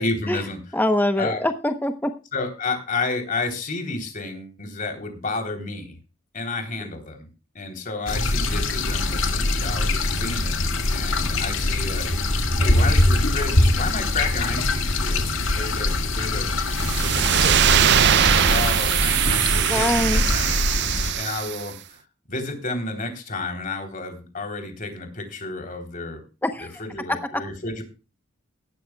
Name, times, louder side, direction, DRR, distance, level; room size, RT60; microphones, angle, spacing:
voice 1, 0.0-0.6 1.2-1.4 2.3-6.0 6.3-7.3 7.5-12.0 12.6-15.3 15.5-16.5 17.0-17.7 18.1-20.5 21.1-21.7 22.3-26.2 26.6-27.8, left 3 dB, 40° left, 5 dB, 3.5 m, -31 dB
voice 2, 0.7-2.1 19.7-20.2 26.4-26.8 27.1-27.2, left 1 dB, 10° left, 7 dB, 0.9 m, -23 dB
sound 1, 8.1-21.1, left 2 dB, 65° left, 2.0 m, -23 dB
sound 2, 16.7-21.7, right 10 dB, 55° right, 0.5 m, -21 dB
17.0 x 12.5 x 2.3 m, 0.31 s
head